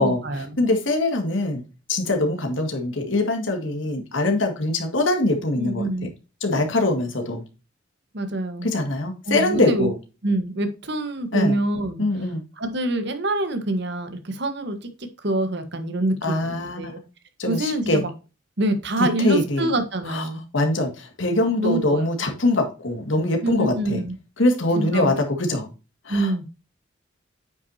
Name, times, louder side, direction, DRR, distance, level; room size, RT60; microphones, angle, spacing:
voice 1, 0.0-0.5 5.6-6.1 8.1-8.7 9.3-9.9 10.2-12.0 12.6-17.0 17.5-18.1 18.6-20.4 21.6-22.1 23.4-24.2 24.7-25.1 26.1-26.4, right 1 dB, 60° right, 8 dB, 1.3 m, -26 dB
voice 2, 0.6-1.6 1.9-6.1 6.4-7.4 8.6-9.9 11.3-11.6 12.0-12.4 16.2-17.0 17.4-18.0 19.2-19.7 20.1-20.3 20.5-24.0 24.4-25.7 26.1-26.4, left 2 dB, 75° left, 4 dB, 2.0 m, -23 dB
9.1 x 5.9 x 2.8 m, 0.32 s
head